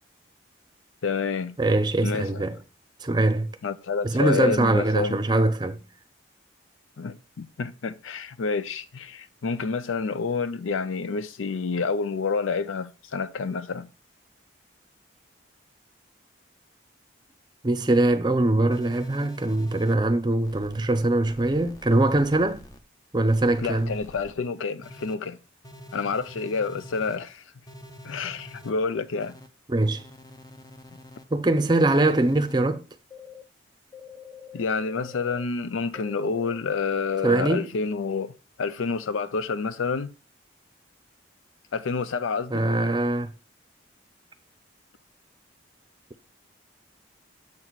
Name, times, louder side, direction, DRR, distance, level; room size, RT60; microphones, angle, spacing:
voice 1, 1.0-1.6 2.0-2.4 3.6-5.2 7.0-13.9 23.6-25.4 25.9-27.4 28.0-29.4 34.5-38.3 38.6-40.1 41.7-42.7, left 4 dB, 90° left, 0.5 m, -28 dB
voice 2, 1.6-2.6 3.0-3.5 4.0-5.8 17.6-22.7 23.1-23.9 29.7-30.1 31.3-32.8 37.2-37.7 42.5-43.3, right 2 dB, 20° right, 0.6 m, -22 dB
sound 1, 18.7-19.9 20.4-20.8 21.3-22.8 23.3-24.3 24.8-25.1 25.6-27.2 27.7-28.7 29.2-29.5 30.0-31.2 31.7-32.6 33.1-33.4 33.9-35.4 35.9-36.6, left 2 dB, 20° left, 0.6 m, -46 dB
7.5 x 4.1 x 4.5 m
head